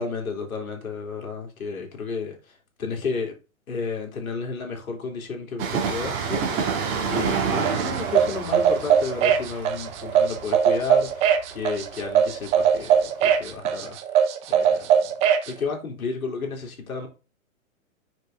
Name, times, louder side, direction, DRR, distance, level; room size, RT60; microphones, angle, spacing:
voice 1, 0.0-3.3 3.7-14.0 14.5-15.2 15.5-17.1, left 4 dB, 80° left, 3.3 m, -32 dB
Train, 5.6-13.0 13.3-13.4, right 6 dB, 30° right, 2.3 m, -29 dB
sound 1, 7.6-15.5, right 8 dB, 15° right, 0.6 m, -20 dB
6.6 x 6.1 x 3.8 m
hypercardioid pair, 140°, 42 cm